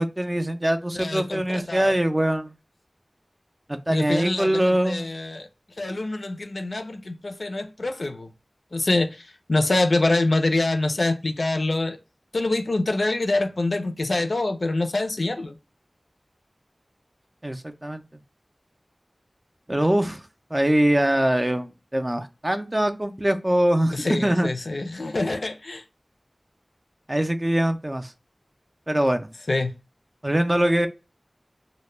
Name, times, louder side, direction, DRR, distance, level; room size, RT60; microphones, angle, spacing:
voice 1, 0.0-2.5 3.7-5.1 17.4-18.0 19.7-20.3 20.5-24.5 27.1-28.1 28.9-29.3 30.2-30.9, right 1 dB, 25° right, 0.4 m, -23 dB
voice 2, 0.9-2.0 3.9-5.5 5.8-8.3 8.7-12.0 12.3-15.6 23.9-25.8 29.5-29.7, left 2 dB, 75° left, 0.3 m, -25 dB
2.1 x 2.0 x 3.0 m
wide cardioid pair, 40°, 0 cm